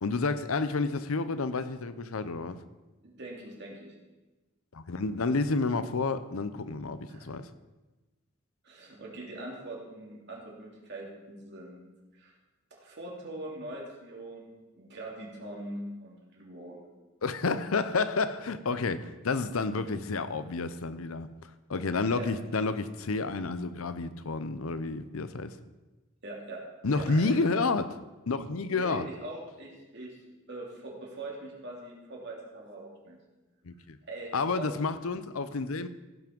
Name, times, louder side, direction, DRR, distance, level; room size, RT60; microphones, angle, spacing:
voice 1, 0.0-2.6 4.7-7.5 17.2-21.3 21.7-25.5 26.8-27.9 28.3-29.1 33.6-34.0 34.3-35.9, left 3 dB, 85° left, 0.7 m, -30 dB
voice 2, 3.0-3.9 7.1-7.3 8.6-11.8 12.1-12.3 12.7-16.8 22.1-22.3 26.2-26.6 26.9-27.4 28.7-30.2 30.5-33.2 34.1-34.7, right 2 dB, 55° right, 3.0 m, -42 dB
16.0 x 6.0 x 5.3 m
head